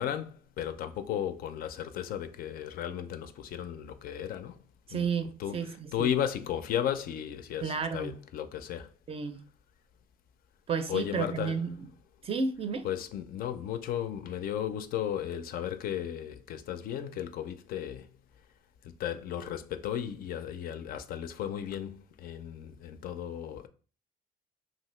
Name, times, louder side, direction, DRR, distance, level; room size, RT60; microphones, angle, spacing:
voice 1, 0.0-4.6 4.9-5.1 5.4-5.6 5.9-8.9 10.9-11.6 12.8-18.1 19.0-23.7, left 10 dB, 60° left, 0.4 m, -34 dB
voice 2, 4.9-6.1 7.6-8.2 9.1-9.4 10.7-11.9 12.2-12.9, right 5 dB, 35° right, 0.4 m, -32 dB
2.8 x 2.5 x 3.1 m
cardioid pair, 110°, 17 cm